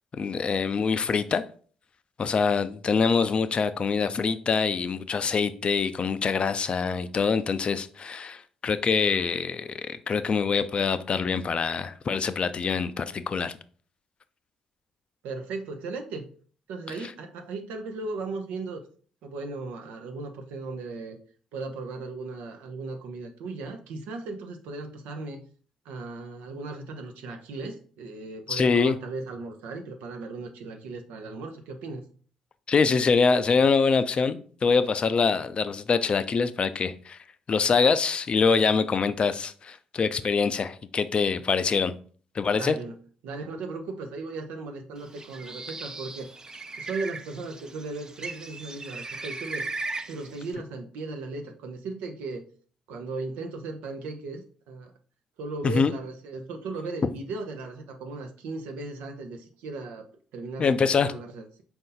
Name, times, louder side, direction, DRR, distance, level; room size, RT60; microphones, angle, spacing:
voice 1, 0.1-1.4 2.2-13.6 28.5-29.0 32.7-37.2 37.5-41.9 42.3-42.8 55.6-55.9 60.6-61.1, left 5 dB, 40° left, 0.4 m, -24 dB
voice 2, 15.2-16.3 16.7-18.8 19.2-21.2 21.5-25.4 25.8-32.0 42.5-43.0 43.2-46.3 46.8-49.6 50.1-52.4 52.9-54.9 55.4-60.1 60.3-61.6, right 3 dB, 70° right, 0.6 m, -37 dB
Bird, 45.0-50.5, right 3 dB, 25° right, 0.5 m, -38 dB
4.3 x 2.6 x 3.8 m
hypercardioid pair, 45°, 3 cm